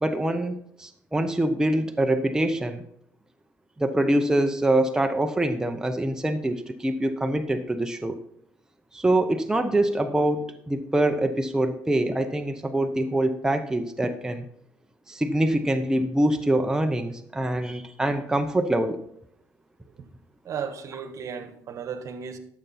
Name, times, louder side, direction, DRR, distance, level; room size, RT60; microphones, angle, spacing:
voice 1, 0.0-2.8 3.8-8.1 8.9-14.4 15.1-19.0, right 1 dB, 10° right, 0.8 m, -24 dB
voice 2, 20.4-22.4, right 7 dB, 60° right, 1.3 m, -35 dB
13.0 x 6.7 x 4.2 m
cardioid pair, 90°, 6 cm